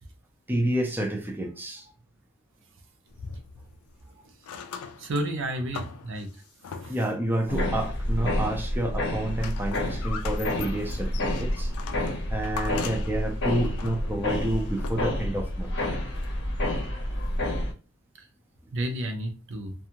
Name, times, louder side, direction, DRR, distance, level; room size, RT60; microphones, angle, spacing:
voice 1, 0.5-1.9 6.9-11.7 12.3-15.7, right 1 dB, 10° right, 1 dB, 0.4 m, -29 dB
sound 1, 3.1-4.0 4.4-7.2 7.8-8.6 8.9-15.4 16.2-16.3, left 5 dB, 80° left, 0.4 m, -41 dB
voice 2, 5.0-6.3 6.8-6.9 18.2-18.3 18.7-19.7, right 1 dB, 60° right, 5 dB, 0.5 m, -31 dB
sound 2, 7.5-17.7, left 1 dB, 55° left, 0.7 m, -29 dB
2.6 x 2.3 x 2.8 m, 0.33 s
head